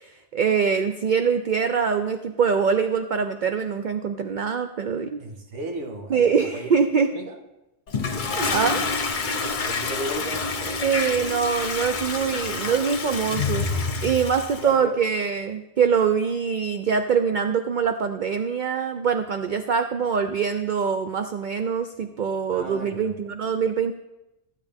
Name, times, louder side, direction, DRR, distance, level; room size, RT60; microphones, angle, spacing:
voice 1, 0.0-5.2 6.1-7.1 8.2-8.8 10.8-13.7 14.0-23.9, right 6 dB, 55° right, 7 dB, 0.6 m, -24 dB
voice 2, 5.2-6.3 6.5-6.7 7.1-7.4 9.4-10.9 12.5-12.9 14.6-15.0 22.5-23.1, right 2 dB, 75° right, 3 dB, 1.8 m, -35 dB
Toilet flush, 7.9-14.7, left 4 dB, 45° left, 0.9 m, -28 dB
15.0 x 9.1 x 3.5 m, 0.96 s
omnidirectional pair, 1.3 m